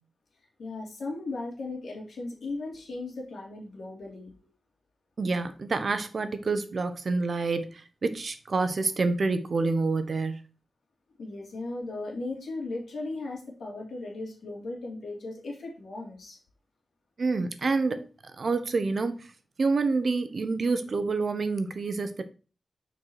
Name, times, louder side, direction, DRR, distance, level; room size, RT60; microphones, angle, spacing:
voice 1, 0.6-4.5 11.2-16.4, left 2 dB, 80° left, 2.6 m, -37 dB
voice 2, 5.2-10.4 17.2-19.3 19.6-22.2, right 3 dB, 50° right, 0.9 m, -28 dB
6.4 x 4.7 x 4.5 m
wide cardioid pair, 120°, 0 cm